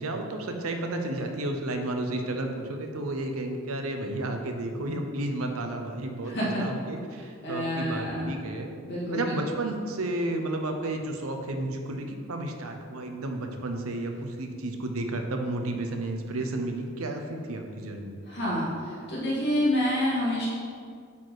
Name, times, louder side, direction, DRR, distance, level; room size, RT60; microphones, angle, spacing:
voice 1, 0.0-8.7 9.1-18.2, right 2 dB, 80° right, 4 dB, 0.8 m, -32 dB
voice 2, 6.3-6.6 7.4-8.2 8.8-9.2 18.3-18.7 19.1-20.5, left 1 dB, 50° left, -6 dB, 1.9 m, -27 dB
8.3 x 4.3 x 4.9 m, 2.2 s
head